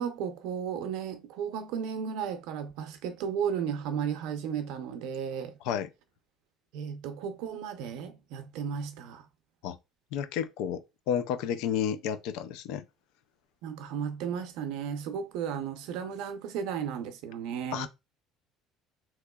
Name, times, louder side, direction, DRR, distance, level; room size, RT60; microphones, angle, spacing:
voice 1, 0.0-5.6 6.7-9.3 13.6-17.9, right 7 dB, 75° right, 0.6 m, -34 dB
voice 2, 10.1-12.8 17.7-17.9, left 9 dB, 75° left, 0.4 m, -31 dB
3.6 x 3.0 x 2.2 m
cardioid pair, 165°, 0 cm